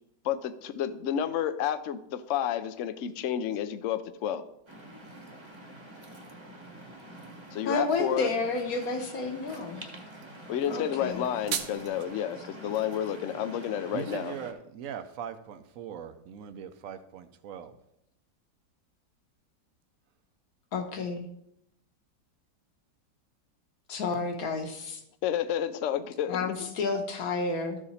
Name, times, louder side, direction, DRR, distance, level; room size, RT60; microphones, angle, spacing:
voice 1, 0.2-4.4 7.5-8.3 10.5-14.3 25.2-26.7, left 9 dB, 85° left, 11 dB, 0.6 m, -30 dB
Waves surf, 4.7-14.5, right 1 dB, 20° right, 0.8 m, -46 dB
voice 2, 7.7-9.9 10.7-11.2 20.7-21.3 23.9-25.0 26.3-27.8, left 3 dB, 55° left, 6 dB, 1.3 m, -31 dB
sound 1, 11.0-12.1, right 8 dB, 90° right, 1.5 m, -35 dB
voice 3, 13.9-17.8, right 8 dB, 70° right, 10 dB, 0.8 m, -40 dB
13.5 x 4.9 x 4.1 m, 0.78 s
omnidirectional pair, 2.0 m